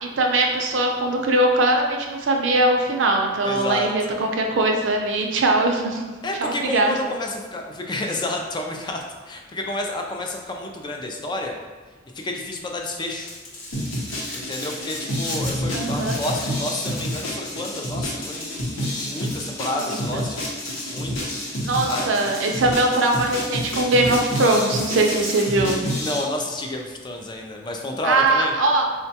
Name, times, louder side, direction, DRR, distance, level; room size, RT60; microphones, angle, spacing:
voice 1, 0.0-6.0 6.4-7.0 15.7-16.2 19.7-20.2 21.6-25.8 28.0-28.9, right 2 dB, 70° right, 2 dB, 0.5 m, -21 dB
voice 2, 3.4-3.9 6.2-11.6 12.1-13.3 14.3-20.4 20.9-21.4 21.9-22.1 26.0-28.5, left 1 dB, 25° left, 1 dB, 0.3 m, -30 dB
Domestic sounds home sounds, 13.1-15.5 15.8-17.3 17.6-17.7 18.3-19.4 19.9-20.0 20.3-20.8 21.2-22.4 22.8-25.4, left 2 dB, 45° left, 0.8 m, -37 dB
sound 1, 13.7-26.2, equal, 80° left, 0.8 m, -29 dB
4.5 x 2.2 x 2.7 m, 1.3 s
head